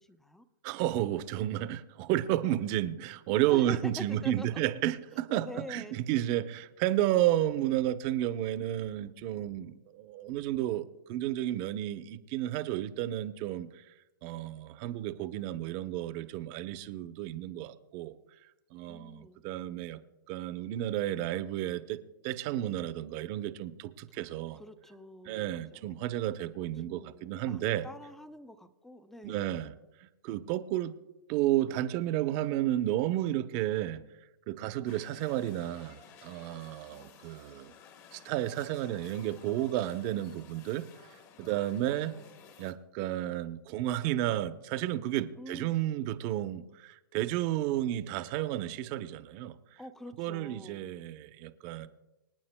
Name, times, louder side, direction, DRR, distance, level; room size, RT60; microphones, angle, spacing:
voice 1, 0.0-0.5 3.5-4.6 5.4-6.0 18.9-19.4 24.1-25.9 26.6-29.4 34.8-35.0 36.9-37.2 41.8-42.5 45.4-45.8 49.8-50.9, left 1 dB, 5° left, 12 dB, 0.6 m, -46 dB
voice 2, 0.6-13.9 14.2-18.2 18.7-20.0 20.3-22.0 22.2-24.6 25.2-27.8 29.2-29.7 30.0-30.9 31.3-34.0 34.5-37.7 38.1-42.2 42.6-49.8 50.2-51.9, right 13 dB, 35° right, 11 dB, 0.8 m, -32 dB
sound 1, 34.9-42.7, left 7 dB, 30° left, 1.1 m, -55 dB
26.0 x 9.2 x 2.2 m, 1.0 s
hypercardioid pair, 130°, 11 cm